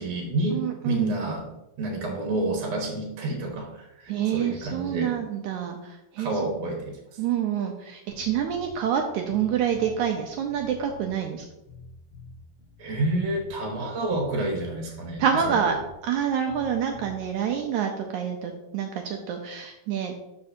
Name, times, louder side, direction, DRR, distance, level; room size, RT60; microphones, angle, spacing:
voice 1, 0.0-1.5 1.8-5.1 6.2-7.2 12.8-15.6, right 2 dB, 60° right, 0 dB, 2.1 m, -29 dB
voice 2, 0.5-1.2 4.1-6.3 7.2-11.4 15.2-15.8 16.0-20.1, right 8 dB, 85° right, 3 dB, 1.7 m, -27 dB
sound 1, 8.1-17.7, left 3 dB, 85° left, 1.2 m, -48 dB
12.5 x 5.2 x 2.7 m, 0.91 s
omnidirectional pair, 4.1 m